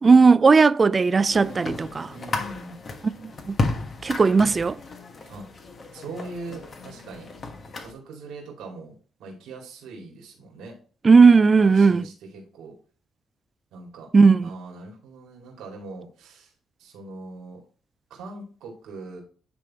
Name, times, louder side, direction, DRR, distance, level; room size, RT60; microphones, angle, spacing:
voice 1, 0.0-2.1 3.2-3.5 4.0-4.8 11.0-12.0 14.1-14.5, right 4 dB, 30° right, 0.3 m, -16 dB
sound 1, 1.3-7.9, left 3 dB, 40° left, 1.3 m, -33 dB
voice 2, 2.1-2.8 5.3-5.5 5.9-7.3 7.8-10.8 11.6-12.7 13.7-14.1 14.4-16.5 16.8-17.6 18.1-19.2, right 2 dB, 85° right, 2.5 m, -41 dB
9.8 x 3.5 x 4.2 m
cardioid pair, 90°, 0 cm